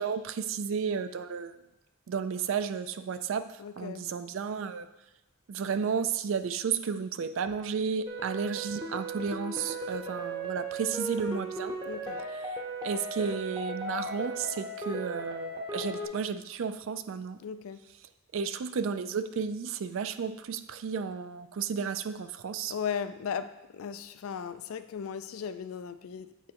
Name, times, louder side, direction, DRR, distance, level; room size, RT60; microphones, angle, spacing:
voice 1, 0.0-1.5 2.1-3.5 3.8-4.9 5.5-11.7 12.5-12.6 12.8-17.4 18.3-22.7, right 6 dB, 65° right, 11 dB, 0.4 m, -33 dB
voice 2, 3.6-4.1 11.8-12.2 17.4-17.8 22.7-26.5, left 7 dB, 75° left, 11 dB, 0.4 m, -37 dB
sound 1, 8.1-16.1, right 1 dB, 20° right, 0.7 m, -37 dB
8.2 x 4.8 x 2.9 m, 0.95 s
head